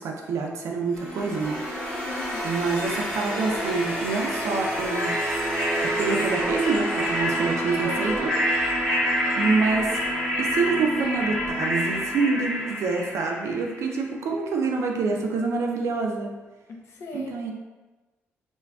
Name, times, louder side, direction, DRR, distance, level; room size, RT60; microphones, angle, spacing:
voice 1, 0.0-1.6 2.4-5.2 5.8-8.3 8.6-8.8 9.4-10.0 10.4-16.3 17.1-17.5, right 4 dB, 75° right, 1 dB, 0.4 m, -27 dB
sound 1, 0.9-13.9, equal, 15° left, 1.3 m, -27 dB
voice 2, 2.1-2.5 7.8-8.2 16.7-17.5, left 3 dB, 70° left, 1 dB, 0.5 m, -38 dB
Bowed string instrument, 2.5-11.0, right 1 dB, 20° right, 0.7 m, -44 dB
3.3 x 2.2 x 2.3 m, 1.2 s
cardioid pair, 65°, 5 cm